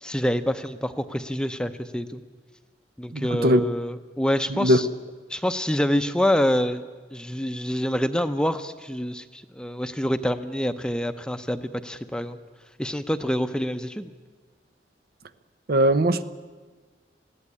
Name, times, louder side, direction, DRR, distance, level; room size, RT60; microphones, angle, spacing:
voice 1, 0.0-2.2 3.0-4.9 5.3-6.8 7.1-12.4 12.8-14.1, equal, 5° left, 0.7 m, -26 dB
voice 2, 3.1-3.6 4.5-4.8 15.7-16.2, equal, 60° right, 0.8 m, -20 dB
20.5 x 16.0 x 9.9 m
head